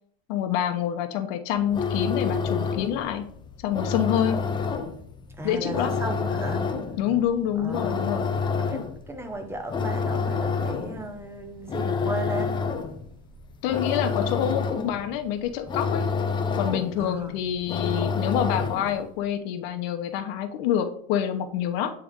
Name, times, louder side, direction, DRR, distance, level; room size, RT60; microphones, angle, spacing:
voice 1, 0.3-3.3 3.6-4.4 5.4-5.9 7.0-8.3 13.6-16.1 16.5-21.9, left 9 dB, 60° left, 0.9 m, -27 dB
sound 1, 1.6-19.1, left 5 dB, 15° left, 0.4 m, -29 dB
voice 2, 5.4-6.7 7.6-8.1 8.5-12.6 17.0-17.4, right 1 dB, 5° right, 0.9 m, -35 dB
8.6 x 3.4 x 3.7 m
supercardioid pair, 140°, 34 cm